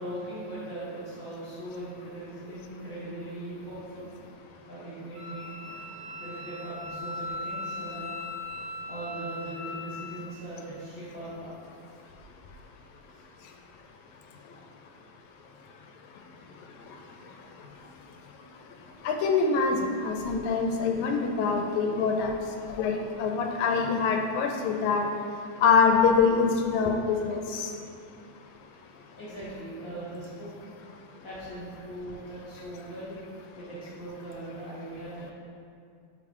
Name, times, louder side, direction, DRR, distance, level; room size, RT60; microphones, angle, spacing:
voice 1, 0.0-4.1 4.7-5.8 6.2-8.2 8.9-11.5 29.2-30.5 31.2-33.1 33.6-35.3, right 1 dB, 60° left, -10 dB, 0.8 m, -39 dB
Wind instrument woodwind instrument, 5.1-10.3, left 2 dB, 60° right, 0.8 m, -38 dB
voice 2, 19.1-19.8 20.0-22.3 22.8-25.0 25.6-27.6, left 5 dB, 85° left, 3 dB, 1.9 m, -24 dB
5.5 x 3.8 x 4.6 m, 2.3 s
omnidirectional pair, 3.4 m